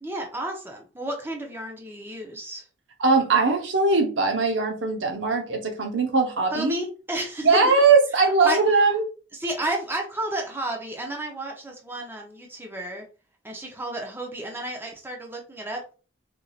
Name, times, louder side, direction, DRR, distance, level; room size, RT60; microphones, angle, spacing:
voice 1, 0.0-2.7 6.5-7.6 8.1-8.9 9.3-13.1 13.4-15.9, right 1 dB, 10° right, 0.7 m, -32 dB
voice 2, 3.0-6.7 7.4-9.0, right 4 dB, 75° right, 0.9 m, -20 dB
4.5 x 2.6 x 2.4 m
head